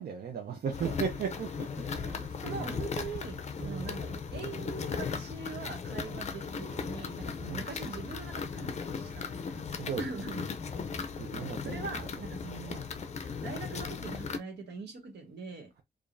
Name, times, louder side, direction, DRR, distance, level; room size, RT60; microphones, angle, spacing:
voice 1, 0.0-2.8 3.6-4.0 7.5-7.6 9.7-10.1 11.2-11.9, right 7 dB, 65° right, 0.7 m, -37 dB
sound 1, 0.7-14.4, left 5 dB, 40° left, 0.5 m, -37 dB
voice 2, 2.4-9.6 10.0-10.4 11.6-12.9 13.4-15.7, right 4 dB, 85° right, 1.5 m, -42 dB
4.9 x 2.5 x 2.6 m
wide cardioid pair, 170°, 17 cm